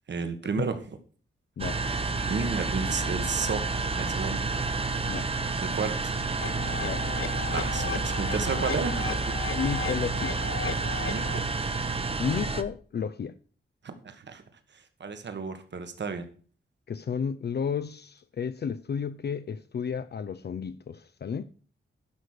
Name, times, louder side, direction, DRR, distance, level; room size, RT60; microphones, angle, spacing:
voice 1, 0.1-0.8 2.3-3.6 4.0-4.4 5.6-6.2 7.5-9.4 11.0-11.5 13.8-14.4 15.0-16.3, right 5 dB, 60° right, 1.6 m, -32 dB
sound 1, 1.6-12.6, right 3 dB, 25° right, 0.9 m, -30 dB
sound 2, 6.4-11.4, left 6 dB, 80° left, 1.1 m, -36 dB
voice 2, 9.5-10.4 12.2-13.3 16.9-21.4, left 6 dB, 50° left, 0.5 m, -32 dB
11.5 x 6.1 x 6.6 m
wide cardioid pair, 160°, 21 cm